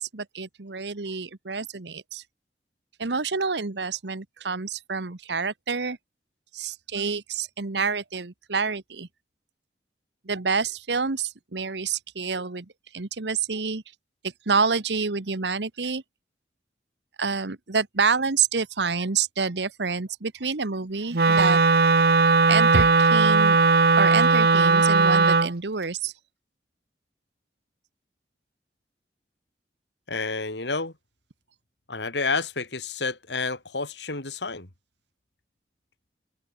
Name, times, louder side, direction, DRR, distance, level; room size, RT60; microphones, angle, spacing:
voice 1, 0.0-2.2 3.0-6.0 6.5-9.1 10.2-12.7 12.9-13.8 14.2-16.0 17.2-21.6 22.5-23.6 24.0-26.1, right 5 dB, 80° right, 1.2 m, -28 dB
Wind instrument woodwind instrument, 21.1-25.5, right 4 dB, 60° right, 1.0 m, -18 dB
voice 2, 30.1-30.9 31.9-34.7, left 4 dB, 80° left, 3.3 m, -29 dB
head